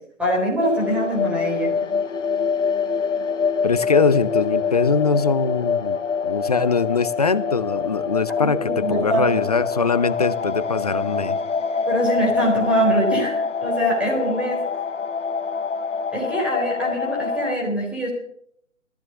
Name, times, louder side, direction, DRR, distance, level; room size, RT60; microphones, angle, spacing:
voice 1, 0.2-1.7 8.4-9.4 11.9-14.6 16.1-18.1, equal, 5° right, -2 dB, 3.7 m, -23 dB
sound 1, 0.6-17.6, left 5 dB, 70° left, 0.9 m, -25 dB
voice 2, 3.6-6.0 6.2-11.4, left 4 dB, 30° left, 16 dB, 0.6 m, -22 dB
15.0 x 14.0 x 6.9 m, 0.68 s
figure-of-eight pair, 145°, 38 cm